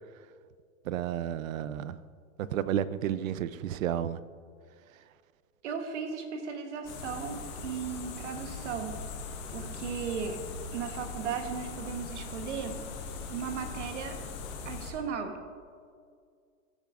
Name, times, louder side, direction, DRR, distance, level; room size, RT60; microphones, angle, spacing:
voice 1, 0.8-2.0 2.4-4.2 4.9-5.0, right 10 dB, 75° right, 15 dB, 0.6 m, -32 dB
voice 2, 5.6-9.0 9.5-10.4 10.7-12.8 13.3-14.2 14.6-15.4, right 6 dB, 60° right, 6 dB, 1.2 m, -36 dB
sound 1, 6.8-14.9, left 4 dB, 30° left, 1.2 m, -40 dB
15.5 x 10.5 x 2.5 m, 2.1 s
supercardioid pair, 165°, 41 cm